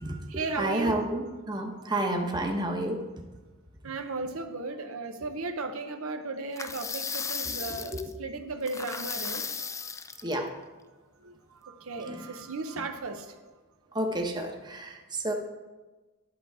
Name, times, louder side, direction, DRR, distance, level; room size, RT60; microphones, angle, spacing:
voice 1, 0.0-1.0 1.5-2.6 3.8-9.9 10.2-10.3 11.2-11.3 11.6-13.4, right 3 dB, 70° right, 6 dB, 0.8 m, -36 dB
voice 2, 0.6-3.1 7.9-8.0 10.2-10.5 12.1-12.2 13.9-15.3, right 1 dB, 20° right, 2 dB, 1.0 m, -30 dB
sound 1, 6.6-8.1 8.7-10.3, left 5 dB, 15° left, 0.3 m, -35 dB
11.0 x 7.0 x 4.8 m, 1.2 s
head